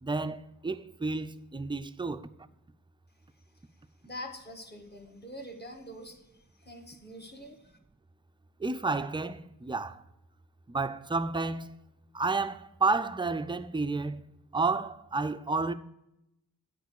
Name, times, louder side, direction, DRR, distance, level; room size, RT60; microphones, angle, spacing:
voice 1, 0.0-2.3 8.6-10.0 10.7-11.7 12.1-14.2 14.5-15.7, right 3 dB, 15° right, 0.4 m, -31 dB
voice 2, 4.0-6.2 6.6-7.8, left 1 dB, 30° left, 1.6 m, -44 dB
9.4 x 4.6 x 6.5 m
wide cardioid pair, 85°, 34 cm